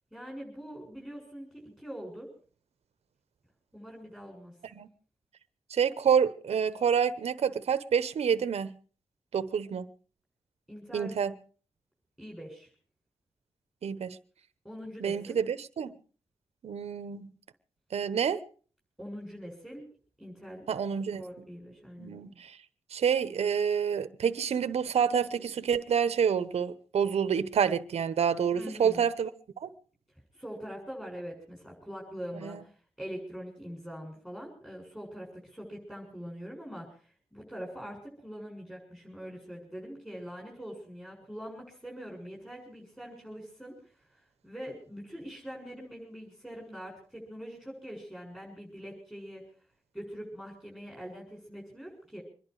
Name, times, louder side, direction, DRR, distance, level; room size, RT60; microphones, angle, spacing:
voice 1, 0.1-2.3 3.7-4.5 10.7-11.2 12.2-12.7 14.6-15.4 19.0-19.8 20.2-20.6 21.2-22.1 28.5-29.0 30.3-49.4 49.9-52.2, equal, 5° left, 6.9 m, -43 dB
voice 2, 5.7-8.7 9.3-9.9 10.9-11.3 13.8-14.2 15.0-15.9 16.6-17.3 17.9-18.4 20.7-21.2 22.0-22.6 22.9-29.3 29.6-29.7 32.4-32.6, right 7 dB, 80° right, 1.0 m, -28 dB
25.0 x 11.0 x 4.8 m
wide cardioid pair, 90°, 11 cm